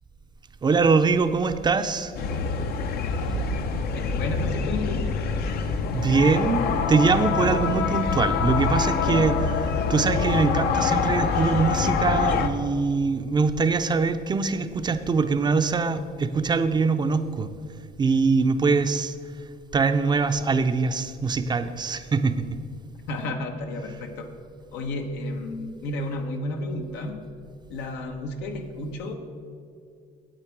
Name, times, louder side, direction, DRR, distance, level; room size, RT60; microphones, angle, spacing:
voice 1, 0.6-2.1 5.9-9.4 9.9-17.5 18.0-19.1 19.7-22.4, right 4 dB, 25° right, 10 dB, 0.5 m, -23 dB
sound 1, 2.1-12.5, left 5 dB, 65° left, 0.7 m, -25 dB
voice 2, 3.9-5.1 7.4-7.7 9.0-9.3 23.1-24.3 24.7-27.2 27.7-29.1, left 2 dB, 90° left, 4 dB, 1.1 m, -32 dB
9.0 x 8.2 x 4.6 m, 2.4 s
cardioid pair, 110°, 17 cm